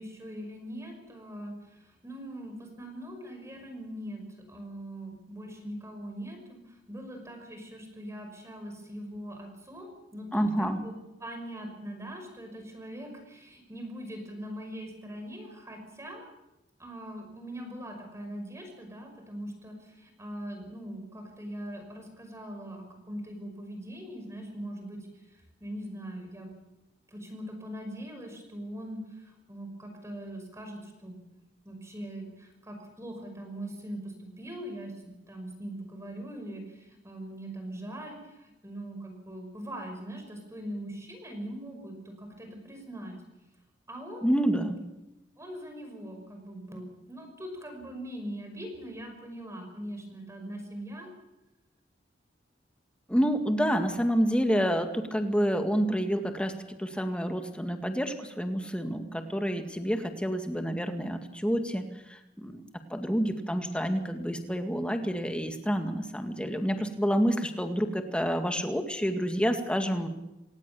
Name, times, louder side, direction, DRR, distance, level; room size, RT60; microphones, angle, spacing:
voice 1, 0.0-10.9 11.2-16.3 16.8-26.5 27.1-31.2 31.6-43.2 43.9-44.4 45.4-51.1, right 1 dB, 15° right, 4 dB, 5.8 m, -41 dB
voice 2, 10.3-10.8 44.2-44.8 53.1-61.8 62.1-62.6 62.9-70.1, equal, 5° left, 6 dB, 2.1 m, -28 dB
27.0 x 18.5 x 7.0 m, 0.94 s
head